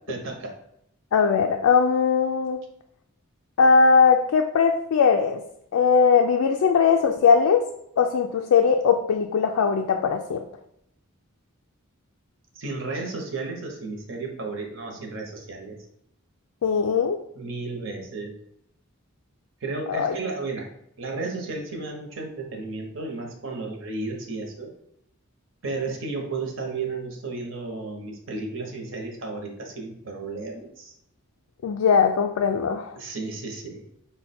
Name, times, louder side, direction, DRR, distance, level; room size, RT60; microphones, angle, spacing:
voice 1, 0.1-0.5 12.5-15.8 17.4-18.3 19.6-20.7 21.0-24.7 25.6-30.9 33.0-33.8, right 3 dB, 60° right, 2 dB, 0.9 m, -33 dB
voice 2, 1.1-2.6 3.6-5.4 5.7-7.7 8.0-10.4 16.6-17.2 19.9-20.1 31.6-32.9, left 5 dB, 80° left, 4 dB, 0.4 m, -20 dB
5.5 x 2.2 x 4.1 m, 0.75 s
head